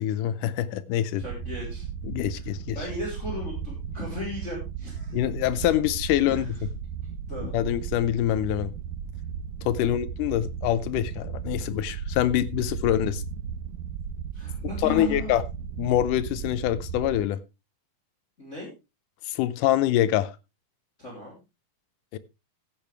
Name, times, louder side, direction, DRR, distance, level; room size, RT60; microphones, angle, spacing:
voice 1, 0.0-1.2 2.0-2.8 5.1-6.6 7.4-8.7 9.7-13.2 14.8-15.4 15.8-17.4 19.3-20.3 22.1-22.2, left 12 dB, 75° left, 2.0 m, -25 dB
voice 2, 1.2-1.9 2.8-5.2 6.3-6.5 7.3-7.5 9.7-9.9 14.3-15.3 18.4-18.7 21.0-21.4, left 1 dB, 20° left, 3.6 m, -36 dB
sound 1, 1.2-17.2, right 7 dB, 80° right, 2.5 m, -35 dB
15.0 x 8.6 x 3.4 m
omnidirectional pair, 4.3 m